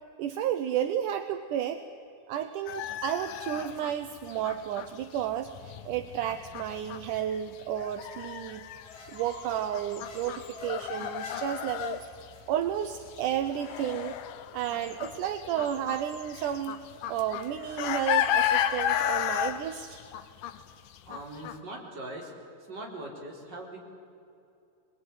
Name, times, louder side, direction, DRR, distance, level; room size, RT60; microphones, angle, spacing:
voice 1, 0.2-1.8 2.3-8.7 9.1-12.1 12.5-14.2 14.5-16.8 17.1-20.0, right 10 dB, 75° right, 9 dB, 2.0 m, -32 dB
sound 1, 2.7-12.4 12.6-21.5, left 10 dB, 75° left, 2.4 m, -33 dB
sound 2, 8.6-12.7, left 2 dB, 30° left, 5.8 m, -48 dB
voice 2, 21.0-22.3 22.7-23.8, right 1 dB, 25° right, -1 dB, 4.6 m, -41 dB
25.5 x 21.0 x 9.5 m, 2.7 s
omnidirectional pair, 4.5 m